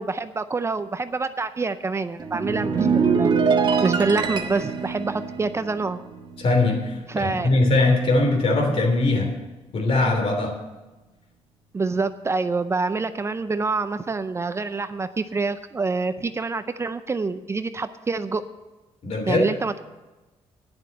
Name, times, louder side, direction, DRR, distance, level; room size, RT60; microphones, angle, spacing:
voice 1, 0.0-3.4 3.8-6.0 7.1-7.5 11.7-18.4 19.3-19.8, right 4 dB, 25° right, 12 dB, 0.5 m, -26 dB
sound 1, 2.2-6.8 7.1-7.4, right 5 dB, 40° right, 1.4 m, -24 dB
voice 2, 6.4-9.3 9.7-10.6 19.0-19.5, left 2 dB, 60° left, 3 dB, 3.1 m, -21 dB
9.7 x 7.5 x 8.3 m, 1.1 s
cardioid pair, 105°, 11 cm